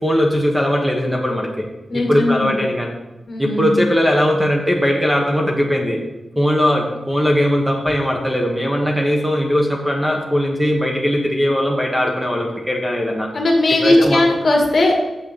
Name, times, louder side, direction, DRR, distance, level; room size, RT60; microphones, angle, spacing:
voice 1, 0.0-1.6 1.9-2.9 3.4-6.0 6.4-13.3 13.8-14.2, equal, 5° right, 1 dB, 1.2 m, -19 dB
voice 2, 1.9-2.5 3.3-3.8 13.3-15.0, left 2 dB, 50° left, 1 dB, 2.1 m, -17 dB
7.8 x 6.4 x 6.8 m, 1.0 s
wide cardioid pair, 135°, 0 cm